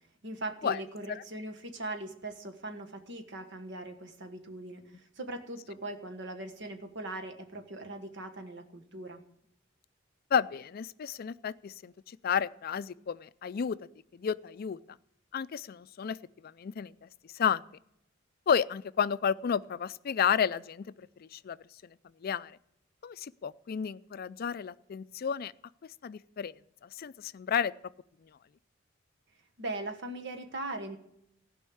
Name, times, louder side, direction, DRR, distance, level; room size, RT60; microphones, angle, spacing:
voice 1, 0.2-9.2 29.6-31.0, right 2 dB, 60° right, 5 dB, 1.4 m, -40 dB
voice 2, 10.3-13.8 14.1-14.8 15.3-16.2 16.4-17.6 18.5-20.9 21.2-21.6 22.2-22.6 23.0-25.5 26.0-26.6 26.8-27.7, left 7 dB, 50° left, 17 dB, 0.4 m, -31 dB
15.5 x 5.4 x 8.5 m, 0.74 s
head